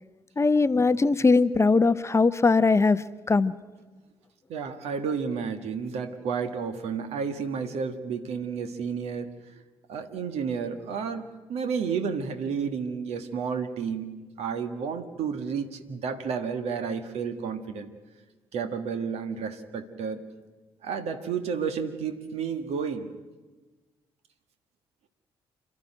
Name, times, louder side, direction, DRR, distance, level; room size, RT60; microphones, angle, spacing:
voice 1, 0.4-3.0 3.3-3.5, left 3 dB, 25° left, 15 dB, 0.7 m, -20 dB
voice 2, 4.5-9.6 9.9-14.1 14.4-17.9 18.5-20.2 20.8-23.1, right 6 dB, 60° right, 9 dB, 1.7 m, -31 dB
28.5 x 12.5 x 9.3 m, 1.3 s
figure-of-eight pair, 45°, 12 cm